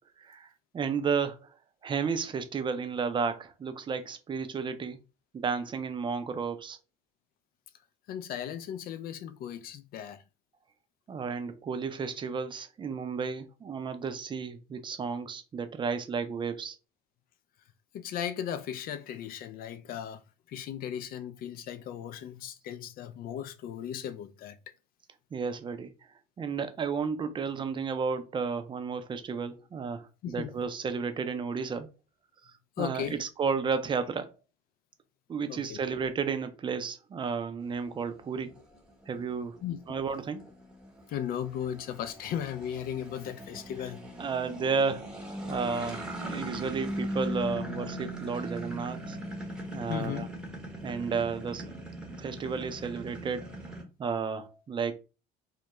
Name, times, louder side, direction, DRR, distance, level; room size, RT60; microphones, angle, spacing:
voice 1, 0.2-0.5 0.7-1.5 1.8-5.0 5.3-6.8 11.1-16.8 25.3-25.9 26.4-31.9 32.8-34.3 35.3-38.5 39.1-39.6 39.9-40.5 43.8-43.9 44.2-49.2 49.7-50.3 50.8-51.8 52.2-53.5 54.0-54.9, right 5 dB, 25° right, 0.4 m, -32 dB
voice 2, 8.1-10.2 17.9-20.2 20.5-24.6 30.2-30.5 32.8-33.2 35.5-35.8 39.6-39.8 41.1-44.0 49.9-50.3, left 9 dB, 50° left, 0.4 m, -36 dB
sound 1, 37.7-53.8, equal, 5° right, 0.8 m, -40 dB
2.3 x 2.1 x 2.9 m
hypercardioid pair, 75°, 19 cm